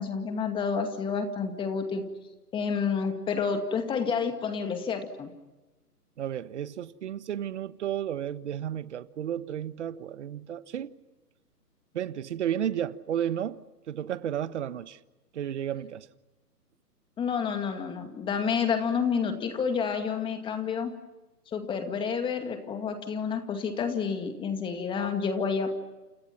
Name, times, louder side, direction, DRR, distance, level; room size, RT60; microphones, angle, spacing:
voice 1, 0.0-2.0 2.5-5.3 17.2-20.9 21.5-25.7, left 6 dB, 10° left, 2.2 m, -29 dB
voice 2, 6.2-10.9 11.9-13.6 13.9-15.0 15.3-16.1, right 10 dB, 45° right, 1.4 m, -32 dB
29.5 x 29.5 x 6.0 m
hypercardioid pair, 145°, 48 cm